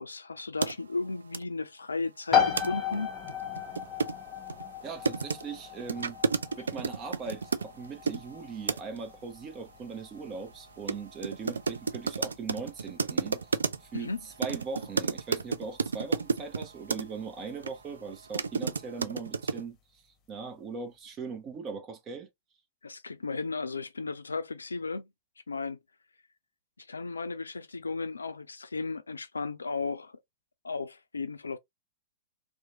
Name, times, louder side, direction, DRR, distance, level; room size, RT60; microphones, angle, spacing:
voice 1, 0.0-3.1 13.9-14.2 22.8-25.1 25.5-25.8 26.8-30.1 30.6-31.6, left 4 dB, 80° left, 0.4 m, -35 dB
sound 1, 0.6-0.7 1.3-1.4 2.6-2.7 2.9-3.0 3.3-8.2 8.7-9.0 10.9-11.0 11.2-14.0 14.4-17.0 17.6-17.7 18.1-19.6, right 5 dB, 75° right, 0.3 m, -31 dB
sound 2, 2.3-16.8, left 8 dB, 25° left, 1.0 m, -35 dB
voice 2, 4.8-6.2 6.6-13.4 13.8-14.1 14.4-19.8 20.3-22.3, right 5 dB, 30° right, 0.9 m, -40 dB
3.0 x 2.2 x 2.6 m
figure-of-eight pair, 105°, 0 cm